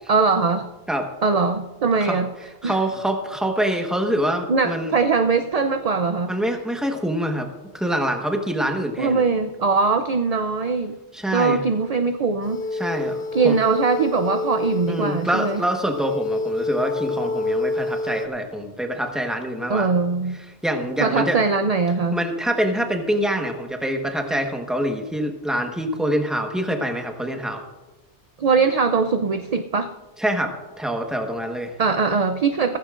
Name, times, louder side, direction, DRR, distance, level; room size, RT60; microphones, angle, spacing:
voice 1, 0.1-0.7 1.2-2.3 2.6-2.8 3.7-3.8 4.5-6.3 9.0-11.0 11.3-12.6 13.3-15.6 19.7-20.4 21.0-22.2 28.4-29.9 31.8-32.8, right 4 dB, 50° right, 8 dB, 0.5 m, -21 dB
voice 2, 2.6-4.9 6.3-9.2 11.1-11.6 12.8-13.6 14.9-19.9 20.6-21.4 22.1-27.6 30.2-31.7, equal, ahead, 3 dB, 1.1 m, -25 dB
sound 1, 12.4-18.3, left 3 dB, 65° left, 0.8 m, -28 dB
15.5 x 15.0 x 2.5 m, 1.1 s
omnidirectional pair, 1.2 m